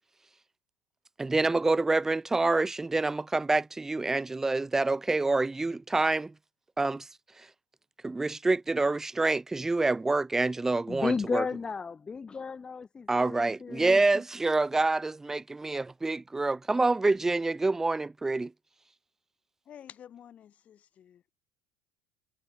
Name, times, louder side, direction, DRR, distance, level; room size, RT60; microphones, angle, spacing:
voice 1, 1.2-6.3 6.8-7.1 8.0-11.4 13.1-18.5, right 3 dB, 10° right, 0.4 m, -27 dB
voice 2, 10.9-14.0, left 5 dB, 25° left, 3.8 m, -34 dB
voice 3, 19.7-21.3, left 9 dB, 45° left, 5.8 m, -50 dB
hypercardioid pair, 85°, 3 cm